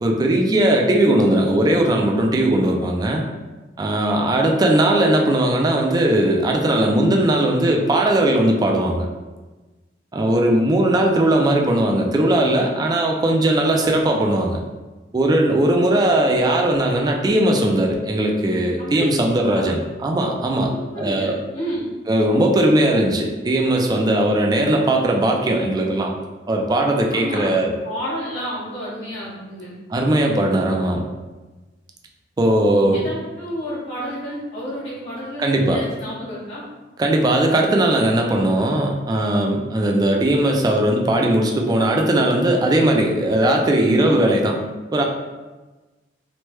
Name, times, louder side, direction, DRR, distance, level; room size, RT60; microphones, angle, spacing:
voice 1, 0.0-3.2 3.8-9.1 10.1-14.6 15.1-20.7 21.0-21.4 22.1-26.1 26.5-27.7 29.9-31.0 32.4-33.0 35.4-35.8 37.0-44.6 44.9-45.0, right 1 dB, 20° right, 1 dB, 0.3 m, -18 dB
voice 2, 20.7-21.9 27.1-27.6 27.8-29.8 32.9-36.6, equal, 85° left, -9 dB, 1.4 m, -30 dB
3.1 x 2.1 x 3.0 m, 1.2 s
head